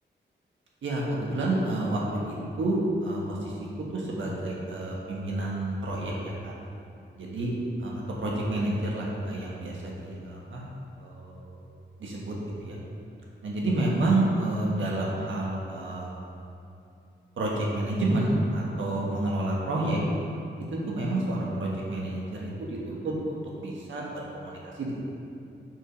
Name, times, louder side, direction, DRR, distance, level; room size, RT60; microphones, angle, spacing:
voice 1, 0.8-3.5 3.9-6.5 7.2-7.5 7.8-10.6 11.0-11.5 12.0-12.8 13.4-16.2 17.4-20.0 20.7-23.1 23.6-25.0, right 2 dB, 80° right, -3 dB, 1.4 m, -29 dB
6.1 x 5.0 x 5.1 m, 2.6 s
wide cardioid pair, 95°, 20 cm